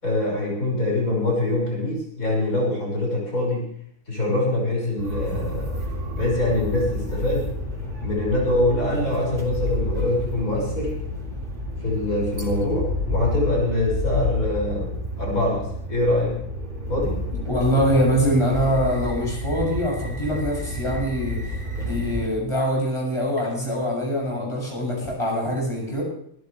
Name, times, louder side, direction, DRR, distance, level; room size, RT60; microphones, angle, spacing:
voice 1, 0.0-3.7 4.1-5.7 6.1-7.5 8.0-10.9 11.8-16.4 16.9-17.2, left 1 dB, 75° left, -2 dB, 6.5 m, -24 dB
sound 1, 5.0-22.3, left 1 dB, 35° right, 3.5 m, -30 dB
voice 2, 17.5-21.4 21.8-26.0, equal, 20° left, -2 dB, 7.4 m, -23 dB
24.0 x 12.0 x 3.4 m, 0.67 s
omnidirectional pair, 1.5 m